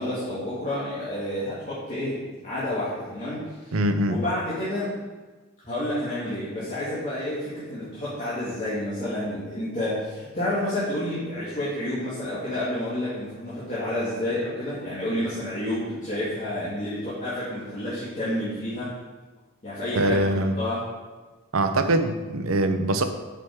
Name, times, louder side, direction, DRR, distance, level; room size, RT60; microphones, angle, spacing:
voice 1, 0.0-3.7 4.1-4.9 5.6-18.9 19.6-20.3 20.6-20.8, left 1 dB, 35° left, -11 dB, 2.2 m, -29 dB
voice 2, 3.7-4.2 20.0-20.5 21.5-23.0, right 1 dB, 75° right, 7 dB, 0.7 m, -23 dB
7.9 x 6.2 x 4.7 m, 1.3 s
head